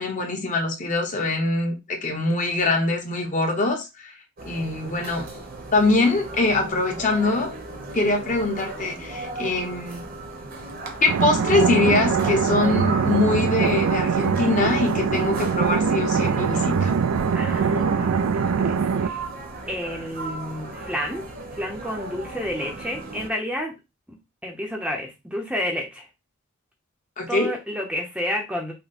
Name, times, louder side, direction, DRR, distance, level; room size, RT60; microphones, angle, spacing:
voice 1, 0.0-4.1 4.4-5.3 5.7-7.5 7.9-10.0 11.0-16.9 27.2-27.5, left 2 dB, 35° left, 2 dB, 1.0 m, -23 dB
sound 1, 4.4-23.3, right 2 dB, 45° right, 1.0 m, -36 dB
sound 2, 11.1-19.1, right 6 dB, 90° right, 0.4 m, -22 dB
voice 2, 17.3-19.2 19.7-21.2 21.6-23.7 24.4-26.1 27.3-28.7, equal, 5° right, 1 dB, 0.7 m, -30 dB
5.7 x 2.2 x 4.1 m, 0.24 s
head